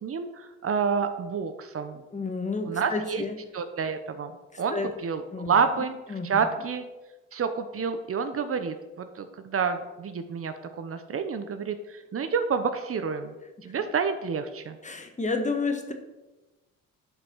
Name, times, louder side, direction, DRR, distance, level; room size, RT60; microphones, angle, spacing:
voice 1, 0.0-2.0 2.7-3.2 3.5-4.3 4.6-6.0 6.2-6.8 7.3-13.3 13.6-14.8, right 6 dB, 50° right, 9 dB, 1.0 m, -29 dB
voice 2, 2.1-3.4 4.5-4.9 5.3-5.6 6.1-6.4 14.8-15.9, left 3 dB, 25° left, 5 dB, 1.5 m, -30 dB
11.0 x 5.3 x 6.2 m, 1.1 s
cardioid pair, 90°, 30 cm